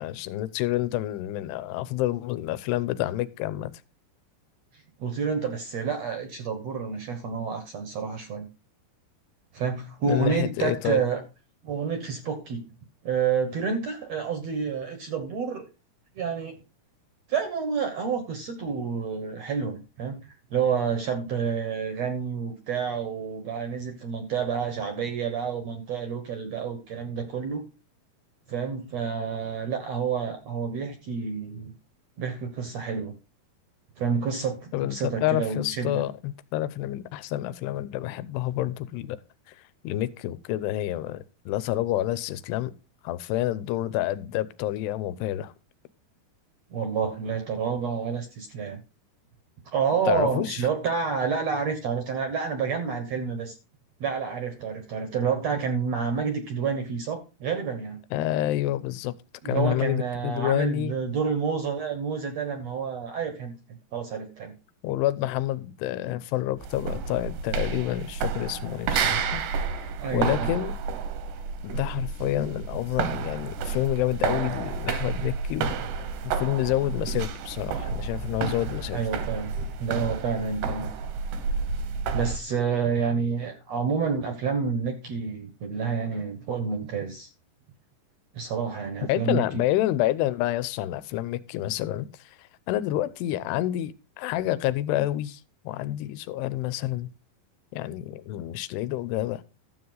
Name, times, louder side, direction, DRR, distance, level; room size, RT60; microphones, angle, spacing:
voice 1, 0.0-3.7 10.1-11.0 34.7-39.2 39.5-42.7 43.0-45.5 50.1-50.6 58.1-59.2 59.5-60.9 64.8-69.4 70.1-70.8 71.6-75.8 76.2-79.0 89.1-97.1 97.7-99.4, left 14 dB, 85° left, 2.8 m, -28 dB
voice 2, 5.0-8.5 9.5-11.2 11.6-12.6 13.0-15.6 16.2-16.6 17.3-20.2 20.5-27.6 28.5-31.7 32.2-33.1 34.0-36.0 46.7-48.8 49.7-53.5 54.0-58.0 59.4-63.5 63.9-64.5 70.0-70.5 78.9-80.9 82.1-87.3 88.3-89.4, right 6 dB, 65° right, 1.6 m, -29 dB
sound 1, 66.6-82.4, right 5 dB, 85° right, 3.3 m, -30 dB
12.5 x 7.7 x 3.9 m
omnidirectional pair, 4.7 m